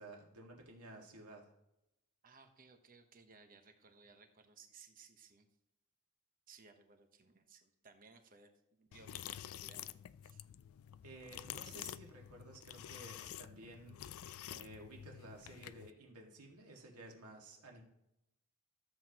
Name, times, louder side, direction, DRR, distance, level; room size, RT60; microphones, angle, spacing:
voice 1, 0.0-1.5 11.0-14.0 14.5-17.8, right 2 dB, 85° right, 0 dB, 2.0 m, -54 dB
voice 2, 2.2-5.5 6.5-9.9 10.2-10.4, right 5 dB, 40° right, 6 dB, 1.0 m, -61 dB
sound 1, 8.9-15.9, left 11 dB, 65° left, 0.3 m, -49 dB
13.5 x 7.7 x 3.0 m, 0.86 s
head